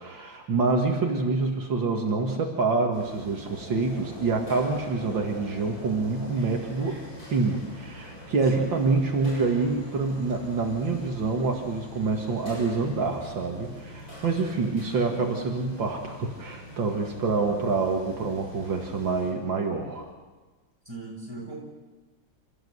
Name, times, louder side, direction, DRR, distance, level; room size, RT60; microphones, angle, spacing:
voice 1, 0.0-7.0 7.3-20.1, right 3 dB, 70° right, 1 dB, 2.7 m, -26 dB
sound 1, 2.9-19.3, equal, 45° left, 6.8 m, -43 dB
voice 2, 20.8-21.6, right 2 dB, 10° right, -3 dB, 6.7 m, -40 dB
28.0 x 14.5 x 8.1 m, 1.3 s
omnidirectional pair, 2.1 m